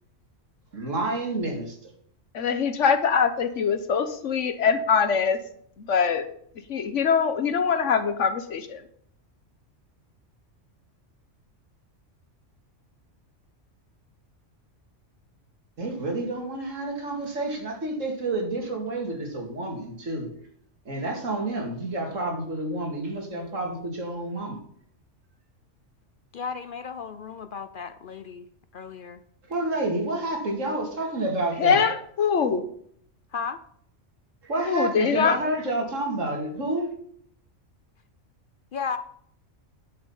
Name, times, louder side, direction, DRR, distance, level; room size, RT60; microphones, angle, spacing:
voice 1, 0.7-1.9 15.8-20.3 20.9-24.6 29.5-31.8 34.4-36.9, right 2 dB, 85° right, 1 dB, 2.7 m, -29 dB
voice 2, 2.3-5.4 5.8-6.3 6.7-8.8 31.6-32.6 34.7-35.4, left 6 dB, 70° left, 10 dB, 1.3 m, -23 dB
voice 3, 26.3-28.5 28.7-29.2 33.3-33.6 38.7-39.0, left 5 dB, 55° left, 12 dB, 0.6 m, -34 dB
10.5 x 6.8 x 5.6 m, 0.64 s
omnidirectional pair, 1.3 m